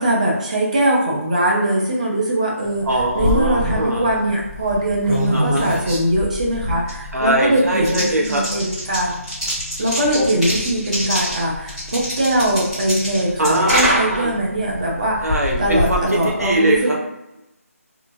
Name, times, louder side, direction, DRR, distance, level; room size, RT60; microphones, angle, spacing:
voice 1, 0.0-2.8 3.2-9.1 9.8-15.2 15.6-16.9, right 1 dB, 30° right, -3 dB, 0.6 m, -21 dB
sound 1, 2.7-16.8, equal, ahead, 0.8 m, -26 dB
voice 2, 2.8-4.1 5.3-5.7 7.1-8.4 10.1-10.3 13.4-14.3 15.2-17.0, right 1 dB, 75° right, -1 dB, 0.9 m, -21 dB
2.8 x 2.3 x 2.6 m, 0.92 s
figure-of-eight pair, 175°, 8 cm